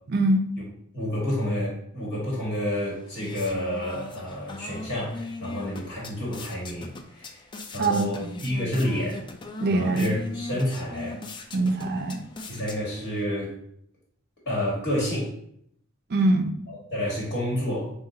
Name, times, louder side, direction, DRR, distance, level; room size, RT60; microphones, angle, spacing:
voice 1, 0.1-0.4 7.8-8.1 9.6-10.1 11.5-12.2 16.1-16.5, right 2 dB, 50° right, 6 dB, 0.5 m, -23 dB
voice 2, 0.9-7.4 7.7-9.2 9.7-11.2 12.5-13.5 14.4-15.3 16.7-17.9, equal, 50° left, -5 dB, 1.4 m, -29 dB
sound 1, 2.7-13.2, left 3 dB, 20° left, 0.3 m, -40 dB
3.9 x 2.4 x 3.8 m, 0.69 s
head